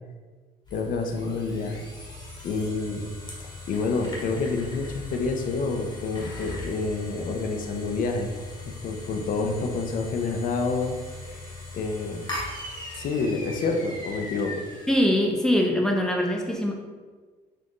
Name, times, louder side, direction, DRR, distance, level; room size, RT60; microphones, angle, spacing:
sound 1, 0.6-15.0, left 2 dB, 25° left, 1.0 m, -39 dB
voice 1, 0.7-1.8 2.4-3.1 3.4-8.3 8.6-11.0 11.3-11.4 11.7-12.3 12.9-14.6, left 3 dB, 55° left, 4 dB, 0.5 m, -28 dB
voice 2, 14.9-16.7, left 1 dB, 5° left, 0 dB, 0.5 m, -22 dB
4.2 x 2.5 x 3.0 m, 1.4 s
cardioid pair, 110°, 17 cm